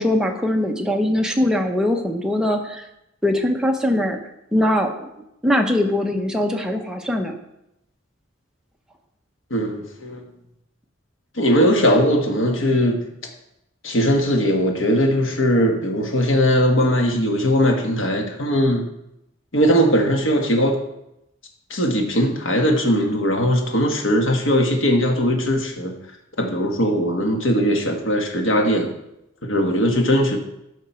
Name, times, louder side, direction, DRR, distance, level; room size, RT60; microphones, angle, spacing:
voice 1, 0.0-2.8 3.2-4.2 4.5-7.3, left 1 dB, 5° right, 2 dB, 0.9 m, -21 dB
voice 2, 9.5-10.2 11.4-13.0 13.8-18.9 19.5-20.8 21.7-25.9 26.4-28.9 29.4-30.4, equal, 80° left, 2 dB, 1.5 m, -19 dB
12.5 x 5.2 x 4.5 m, 0.85 s
head